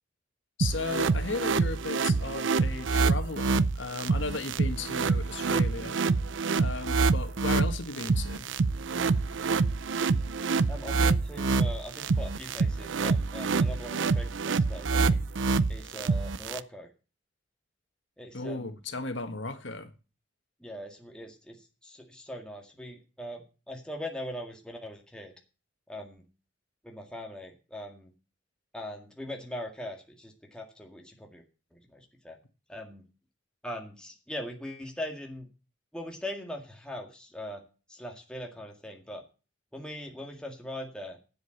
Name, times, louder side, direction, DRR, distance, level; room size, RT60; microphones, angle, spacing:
voice 1, 0.6-6.0 6.6-8.5 18.3-19.9, left 3 dB, 80° left, 1.6 m, -35 dB
sound 1, 0.6-16.6, right 4 dB, 80° right, 0.6 m, -27 dB
voice 2, 10.7-15.2 15.7-16.9 18.2-18.8 20.6-23.4 23.7-25.3 25.9-26.2 26.8-28.1 28.7-31.4 31.7-32.4 32.7-33.0 33.6-35.5 35.9-37.6 37.9-39.2 39.7-41.2, left 1 dB, 5° left, 1.9 m, -41 dB
9.8 x 7.9 x 7.9 m
head